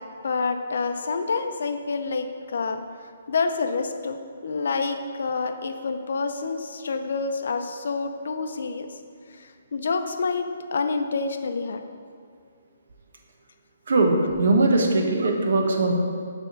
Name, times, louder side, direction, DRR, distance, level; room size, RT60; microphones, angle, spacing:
voice 1, 0.2-2.8 3.3-4.2 4.4-8.9 9.4-11.8, left 4 dB, 65° left, 7 dB, 0.5 m, -28 dB
voice 2, 13.9-15.9, right 2 dB, 70° right, 2 dB, 1.1 m, -20 dB
7.0 x 3.5 x 5.9 m, 2.2 s
hypercardioid pair, 140°, 0 cm